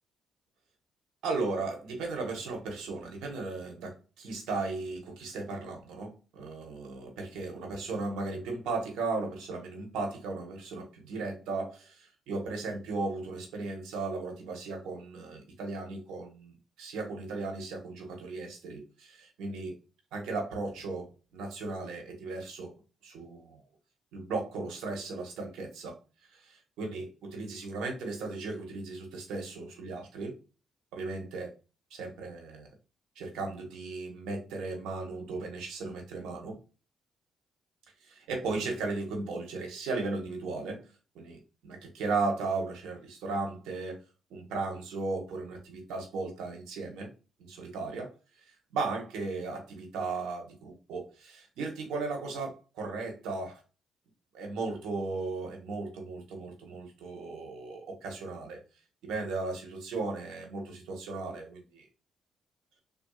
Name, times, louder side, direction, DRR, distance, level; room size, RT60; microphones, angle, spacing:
voice 1, 1.2-19.8 20.1-22.7 23.0-23.6 24.1-26.0 26.3-30.4 30.9-31.5 31.9-32.7 33.2-36.6 38.0-40.9 41.1-44.0 44.3-47.1 47.5-48.1 48.7-53.6 54.3-58.6 59.0-61.9, right 3 dB, 85° right, 2 dB, 0.9 m, -36 dB
3.3 x 2.5 x 2.3 m, 0.32 s
cardioid pair, 90°, 0 cm